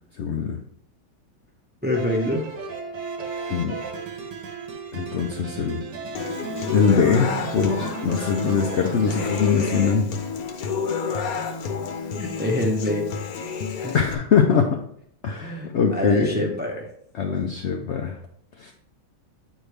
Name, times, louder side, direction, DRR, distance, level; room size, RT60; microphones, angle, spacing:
voice 1, 0.2-0.6 3.5-3.7 4.9-5.8 6.7-10.0 13.9-14.8 15.2-16.4 17.1-18.2 18.6-18.7, left 6 dB, 85° left, 3 dB, 0.6 m, -22 dB
voice 2, 1.8-2.4 12.2-13.1 13.8-14.1 15.4-16.9, left 1 dB, 10° right, 0 dB, 0.6 m, -26 dB
sound 1, 1.9-10.0, right 4 dB, 85° right, 1.6 m, -34 dB
Human voice / Acoustic guitar, 6.1-14.1, left 6 dB, 60° left, 1.1 m, -30 dB
8.8 x 4.5 x 3.3 m, 0.68 s
omnidirectional pair, 1.9 m